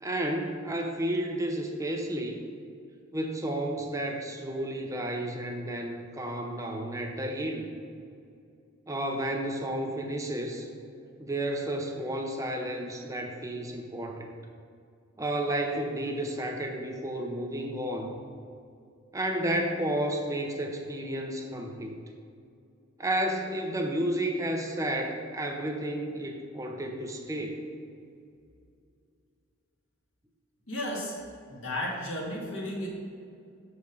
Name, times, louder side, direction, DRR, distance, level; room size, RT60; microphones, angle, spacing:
voice 1, 0.0-2.4 3.1-7.7 8.9-10.7 11.2-14.4 15.2-18.2 19.1-21.9 23.0-27.6, right 1 dB, 15° right, 2 dB, 0.6 m, -32 dB
voice 2, 30.7-31.1 31.5-32.9, left 1 dB, 70° left, -2 dB, 1.7 m, -33 dB
7.0 x 5.0 x 5.3 m, 2.4 s
head